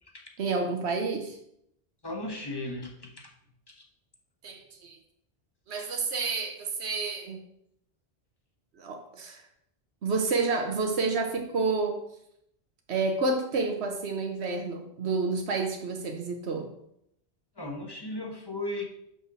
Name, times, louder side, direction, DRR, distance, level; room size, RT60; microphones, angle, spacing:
voice 1, 0.4-1.4 4.4-5.0 5.7-7.4 8.8-9.4 10.0-12.0 12.9-16.7, right 3 dB, 90° right, 3 dB, 1.2 m, -29 dB
voice 2, 2.0-3.3 3.7-3.8 17.6-18.8, left 1 dB, 25° left, 1 dB, 1.3 m, -36 dB
6.1 x 5.6 x 6.1 m, 0.75 s
omnidirectional pair, 1.1 m